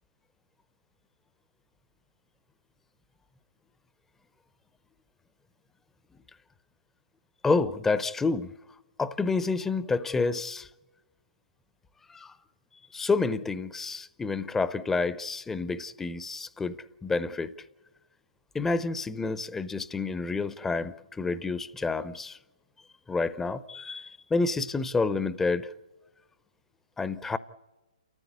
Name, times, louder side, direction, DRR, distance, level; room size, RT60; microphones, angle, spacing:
voice 1, 7.4-8.5 9.0-10.7 12.1-12.3 12.9-17.5 18.5-22.4 23.1-25.7 27.0-27.4, left 4 dB, 10° left, 0.7 m, -29 dB
29.5 x 14.5 x 8.3 m
figure-of-eight pair, 130°, 4 cm